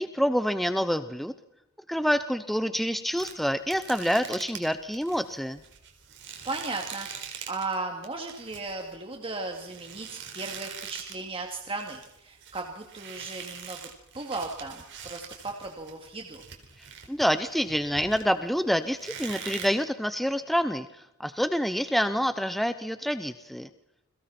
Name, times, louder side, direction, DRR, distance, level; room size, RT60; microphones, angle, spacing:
voice 1, 0.0-1.3 1.9-5.6 16.8-23.7, equal, ahead, 10 dB, 0.7 m, -27 dB
sound 1, 3.2-7.8 8.0-11.3 11.6-18.5 19.0-19.7, right 7 dB, 55° right, 4.3 m, -43 dB
voice 2, 6.4-13.9 14.1-16.4, right 3 dB, 25° right, 1 dB, 2.5 m, -36 dB
30.0 x 22.5 x 4.4 m, 0.87 s
head